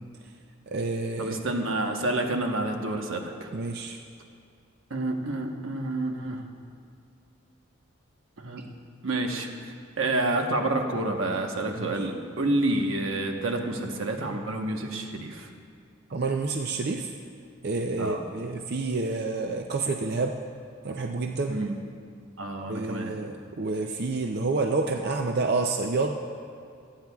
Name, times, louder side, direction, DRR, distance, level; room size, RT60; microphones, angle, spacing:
voice 1, 0.7-1.4 3.5-4.0 11.8-12.0 16.1-17.1 17.6-20.4 20.8-21.6 22.7-26.2, right 3 dB, 50° right, 3 dB, 0.5 m, -29 dB
voice 2, 1.2-3.5 4.9-6.4 8.4-8.7 9.0-15.5 18.0-18.2 21.5-21.8 22.4-23.2, right 2 dB, 85° right, 3 dB, 1.1 m, -29 dB
24.5 x 8.8 x 2.3 m, 2.4 s
head